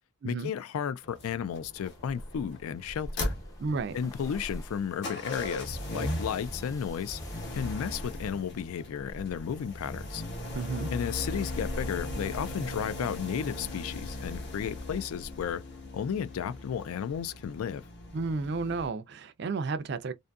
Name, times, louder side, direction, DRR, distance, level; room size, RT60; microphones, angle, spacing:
voice 1, 0.2-3.3 3.9-7.2 7.5-10.2 10.9-15.6 15.9-17.8, left 8 dB, 80° left, 0.3 m, -33 dB
sound 1, 1.0-18.9, left 1 dB, 50° left, 0.9 m, -38 dB
sound 2, 1.8-7.8, equal, 15° left, 0.4 m, -46 dB
voice 2, 3.6-4.0 10.5-10.9 18.1-20.1, right 4 dB, 50° right, 0.4 m, -32 dB
2.6 x 2.5 x 2.2 m
head